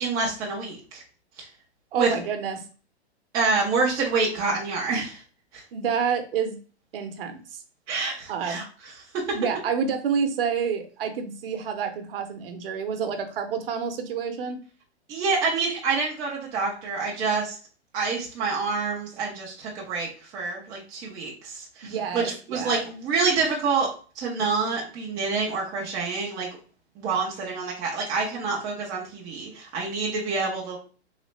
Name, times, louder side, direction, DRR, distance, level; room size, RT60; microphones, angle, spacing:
voice 1, 0.0-1.0 1.4-1.5 2.0-2.1 3.3-5.2 5.5-5.6 7.9-8.6 9.3-9.4 15.1-17.6 17.9-23.9 24.2-26.5 27.0-30.8, right 4 dB, 10° right, -3 dB, 0.4 m, -27 dB
voice 2, 1.9-2.6 5.7-6.6 6.9-7.6 8.3-8.6 9.3-14.6 21.8-22.8, right 6 dB, 55° right, 7 dB, 0.7 m, -28 dB
3.2 x 2.4 x 3.0 m, 0.38 s
hypercardioid pair, 145°, 33 cm